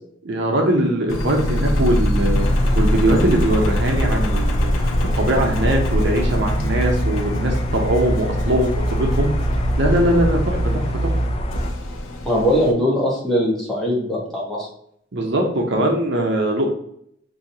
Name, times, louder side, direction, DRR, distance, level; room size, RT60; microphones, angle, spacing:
voice 1, 0.3-2.5 2.8-4.9 5.2-9.3 9.8-11.1 15.1-16.7, right 1 dB, 60° right, 1 dB, 0.7 m, -21 dB
Engine, 1.1-12.7, equal, 85° left, 0.7 m, -21 dB
sound 1, 2.4-11.7, left 2 dB, 30° left, 0.3 m, -32 dB
voice 2, 12.2-14.7, equal, ahead, -6 dB, 1.2 m, -20 dB
6.1 x 2.7 x 2.8 m, 0.70 s
head